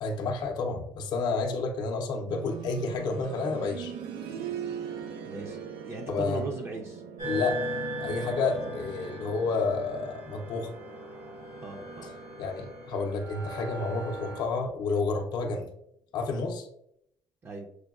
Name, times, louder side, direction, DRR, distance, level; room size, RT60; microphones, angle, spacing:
voice 1, 0.0-3.9 6.1-6.4 7.2-7.6 8.0-10.7 12.4-15.7 16.1-16.7, left 4 dB, 55° left, 2 dB, 0.5 m, -30 dB
sound 1, 2.3-13.1 14.4-14.5, right 8 dB, 90° right, 0.5 m, -42 dB
voice 2, 5.2-5.6 5.8-7.0 11.6-12.1 17.4-17.7, right 2 dB, 30° right, 1 dB, 0.5 m, -37 dB
sound 2, 7.2-14.4, right 1 dB, 65° right, 1.5 m, -38 dB
6.2 x 2.2 x 2.3 m, 0.75 s
cardioid pair, 120°, 8 cm